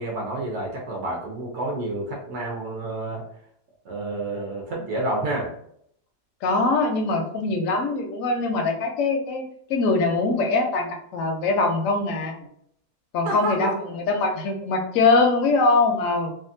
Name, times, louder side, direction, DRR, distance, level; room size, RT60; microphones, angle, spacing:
voice 1, 0.0-3.2 3.8-5.5 13.2-13.7, right 2 dB, 60° right, -1 dB, 0.8 m, -29 dB
voice 2, 6.4-9.4 9.7-12.5 13.1-16.3, left 3 dB, 65° left, 3 dB, 0.8 m, -22 dB
2.8 x 2.3 x 2.6 m, 0.69 s
omnidirectional pair, 1.7 m